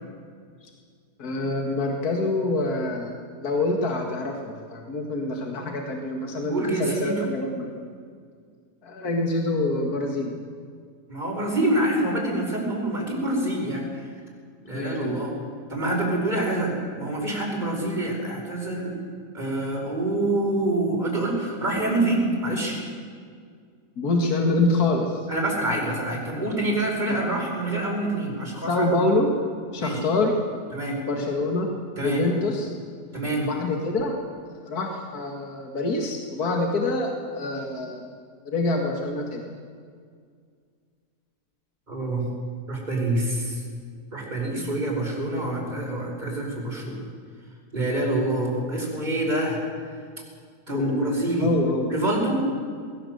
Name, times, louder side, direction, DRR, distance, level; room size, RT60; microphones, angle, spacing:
voice 1, 1.2-7.7 8.8-10.3 14.7-15.2 24.0-25.2 27.1-27.4 28.7-29.3 29.7-30.3 31.1-31.7 32.0-32.7 33.4-34.2 34.6-38.1 38.4-39.4 50.7-51.0 51.4-51.9, left 2 dB, 65° left, 2 dB, 2.4 m, -26 dB
voice 2, 6.5-7.2 11.1-13.9 14.6-15.3 15.7-19.0 19.3-22.8 25.3-28.9 29.8-30.0 30.7-31.0 32.0-32.2 33.1-33.5 41.9-42.3 42.7-43.6 44.1-47.0 47.7-49.6 50.7-51.5 51.9-52.4, right 1 dB, 25° right, -1 dB, 5.2 m, -26 dB
20.5 x 18.5 x 7.9 m, 2.1 s
omnidirectional pair, 1.7 m